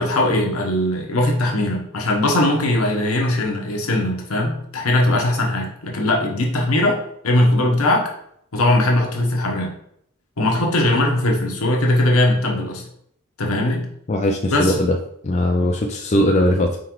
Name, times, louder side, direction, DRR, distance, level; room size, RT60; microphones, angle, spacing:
voice 1, 0.0-8.1 8.5-9.7 10.4-12.8 13.4-13.8 14.5-14.8 15.6-15.7, left 1 dB, 70° left, 1 dB, 1.0 m, -20 dB
voice 2, 14.1-15.0 15.2-16.8, left 1 dB, 30° left, 2 dB, 0.4 m, -19 dB
4.6 x 3.8 x 3.0 m, 0.70 s
head